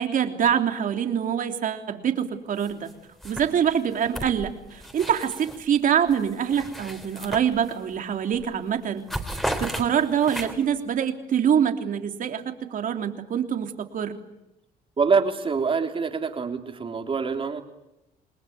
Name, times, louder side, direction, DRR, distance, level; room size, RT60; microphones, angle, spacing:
voice 1, 0.0-2.9 3.2-9.0 9.6-14.1, right 8 dB, 50° right, 6 dB, 3.3 m, -25 dB
sound 1, 2.6-2.9 3.2-5.7 6.1-8.0 8.3-8.6 8.8-10.8, equal, ahead, 3.8 m, -35 dB
voice 2, 15.0-17.6, right 5 dB, 30° right, 5 dB, 3.5 m, -25 dB
28.5 x 20.5 x 9.5 m, 0.91 s
cardioid pair, 110°, 17 cm